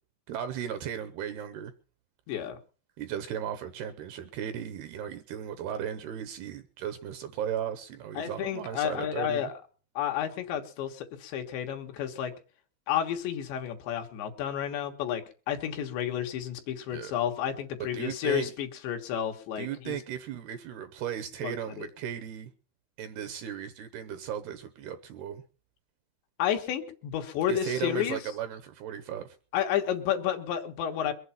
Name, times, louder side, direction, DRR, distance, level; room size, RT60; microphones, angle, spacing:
voice 1, 0.3-1.7 3.0-9.5 16.9-17.1 17.8-18.5 19.6-22.5 23.0-25.4 27.5-29.4, right 9 dB, 75° right, 2.5 m, -36 dB
voice 2, 2.3-2.6 8.2-9.5 10.0-12.3 12.9-20.0 21.4-21.9 26.4-28.2 29.5-31.1, left 10 dB, 75° left, 3.6 m, -31 dB
22.5 x 8.1 x 5.7 m
omnidirectional pair, 5.3 m